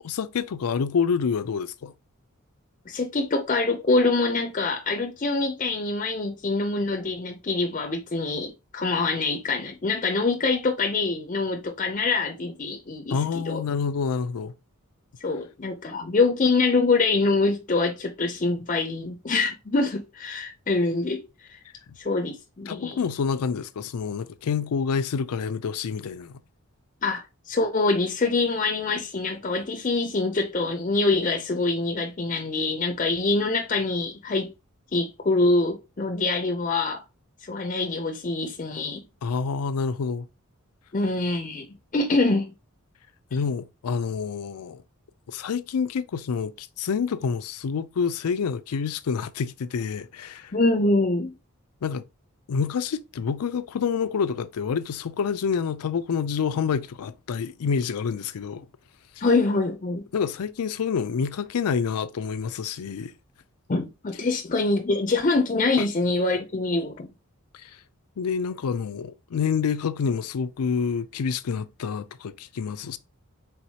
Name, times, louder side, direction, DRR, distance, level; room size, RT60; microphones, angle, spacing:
voice 1, 0.0-1.9 13.1-14.5 22.7-26.4 39.2-40.3 43.3-44.8 45.3-50.5 51.8-52.0 52.5-58.7 59.2-59.3 60.1-63.1 65.8-65.9 67.5-67.8 68.2-73.0, left 6 dB, 90° left, 0.4 m, -28 dB
voice 2, 2.9-13.2 13.5-13.6 15.2-21.2 21.5-21.6 22.0-23.0 27.0-34.5 34.9-37.0 37.4-39.0 40.9-42.5 50.5-51.3 59.2-60.0 63.7-67.1, left 3 dB, 35° left, 0.5 m, -25 dB
4.5 x 3.7 x 2.8 m
head